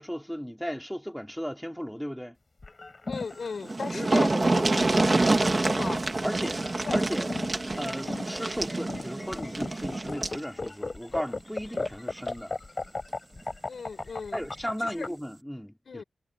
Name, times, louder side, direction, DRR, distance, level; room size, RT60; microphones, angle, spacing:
voice 1, 0.0-2.4 3.9-4.1 5.1-5.9 6.2-6.6 6.9-7.3 7.8-12.5 14.3-16.0, equal, ahead, 3.0 m, -36 dB
sound 1, 2.6-15.1, left 3 dB, 25° left, 3.2 m, -36 dB
voice 2, 3.1-4.9 5.7-6.0 6.8-7.0 13.7-14.4 14.8-15.1 15.9-16.0, left 5 dB, 50° left, 5.7 m, -36 dB
sound 2, 3.3-3.4 3.6-10.4 11.7-11.9 12.3-12.4, right 2 dB, 25° right, 1.5 m, -27 dB
wide cardioid pair, 160°, 0 cm